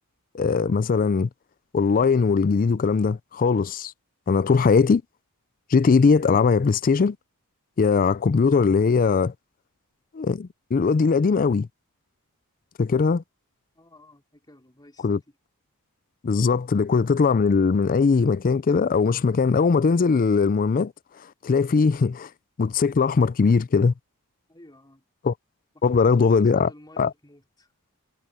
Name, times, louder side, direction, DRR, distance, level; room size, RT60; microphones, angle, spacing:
voice 1, 0.3-1.3 1.7-3.9 4.3-5.0 5.7-7.2 7.8-9.3 10.1-11.7 12.8-13.2 15.0-15.2 16.2-20.9 21.4-22.3 22.6-23.9 25.2-25.3 25.8-26.7 27.0-27.1, left 5 dB, 40° left, 0.4 m, -20 dB
voice 2, 13.7-15.4 16.7-16.8 24.5-25.0 25.7-25.9 26.2-27.7, left 1 dB, 20° left, 4.1 m, -52 dB
head